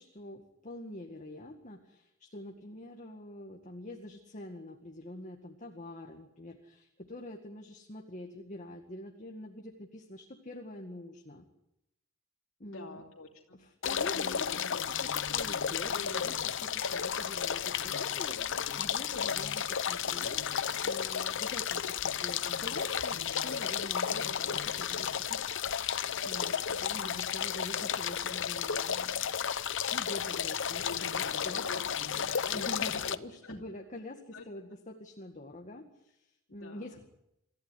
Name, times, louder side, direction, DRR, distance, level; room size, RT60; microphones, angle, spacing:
voice 1, 0.0-11.5 12.6-13.0 13.6-25.9 26.2-29.3 29.9-31.6 32.5-37.0, left 1 dB, 35° left, 3 dB, 2.0 m, -46 dB
voice 2, 12.6-13.6 31.0-33.2 33.4-33.6 34.3-34.4 36.5-36.9, left 3 dB, 80° left, -1 dB, 3.0 m, -46 dB
sound 1, 13.8-33.2, left 8 dB, 65° left, 0.8 m, -33 dB
27.0 x 15.0 x 9.9 m, 0.87 s
head